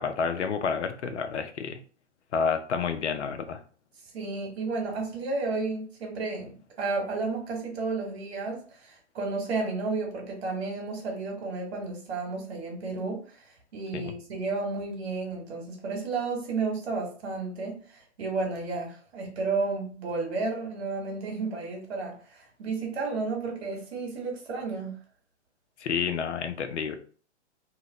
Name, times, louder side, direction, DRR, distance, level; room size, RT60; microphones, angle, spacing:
voice 1, 0.0-1.8 2.3-3.6 13.9-14.1 25.8-27.0, left 6 dB, 70° left, 8 dB, 0.6 m, -29 dB
voice 2, 4.1-13.2 13.7-24.9, right 3 dB, 60° right, 0 dB, 1.4 m, -32 dB
2.8 x 2.4 x 2.9 m, 0.42 s
hypercardioid pair, 120°, 36 cm